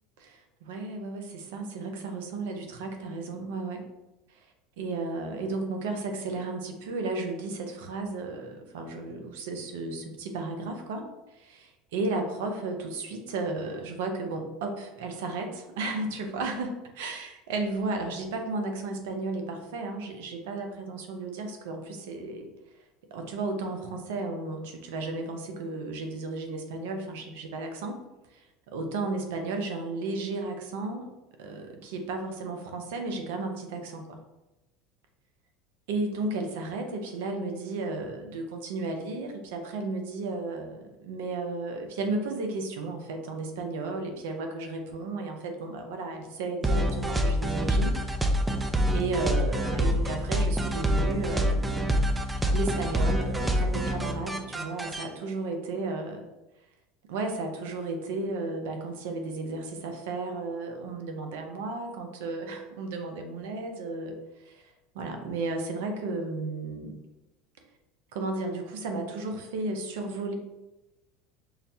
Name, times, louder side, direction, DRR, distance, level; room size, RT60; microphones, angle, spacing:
voice 1, 0.2-3.8 4.3-4.5 4.8-11.1 11.3-22.5 23.1-28.0 28.3-28.4 28.7-31.1 31.4-34.2 35.9-48.0 48.9-51.7 52.5-56.2 57.1-64.2 64.4-64.6 64.9-67.0 68.1-70.3, right 3 dB, 80° right, 4 dB, 0.6 m, -34 dB
sound 1, 46.6-55.0, equal, 10° right, 0.4 m, -26 dB
5.7 x 2.2 x 2.7 m, 1.0 s
supercardioid pair, 100°, 0 cm